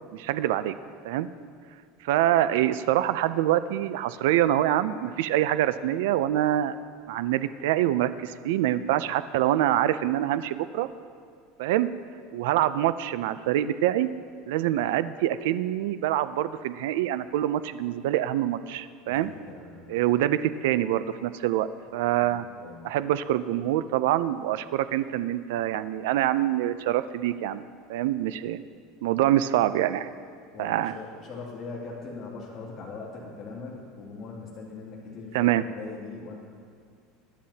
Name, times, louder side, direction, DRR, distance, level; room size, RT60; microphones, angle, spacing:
voice 1, 0.1-0.7 1.0-1.3 2.0-6.8 7.1-10.9 11.6-11.9 12.3-14.1 14.5-19.3 19.9-22.5 22.8-27.6 27.9-28.6 29.0-30.1 30.6-30.9 35.3-35.6, right 13 dB, 80° right, 13 dB, 0.4 m, -25 dB
voice 2, 19.0-19.9 22.2-22.9 30.5-36.4, left 4 dB, 35° left, -5 dB, 2.6 m, -41 dB
22.0 x 10.5 x 2.8 m, 2.1 s
supercardioid pair, 145°, 0 cm